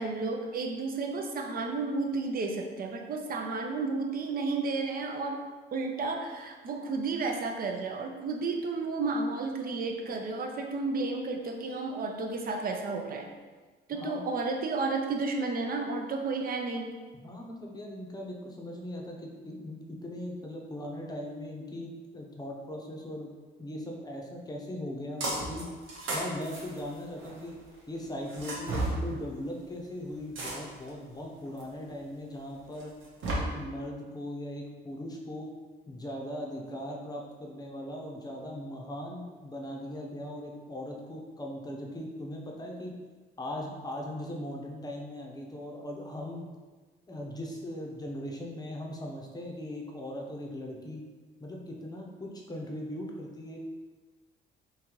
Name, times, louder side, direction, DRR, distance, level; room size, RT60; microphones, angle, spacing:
voice 1, 0.0-5.4 5.7-13.3 13.9-16.9, right 3 dB, 45° right, 3 dB, 0.5 m, -32 dB
voice 2, 13.9-14.3 17.1-23.3 23.6-25.7 26.1-27.5 27.9-32.9 33.3-35.5 35.9-43.0 43.4-46.5 47.1-51.1 51.4-53.7, left 1 dB, 20° left, 0 dB, 0.7 m, -39 dB
sound 1, 25.2-25.6 25.9-27.4 28.3-29.0 30.4-30.9 31.6-31.7 32.8-33.3, right 2 dB, 75° right, 1.0 m, -33 dB
3.7 x 2.7 x 3.0 m, 1.4 s
cardioid pair, 90°, 20 cm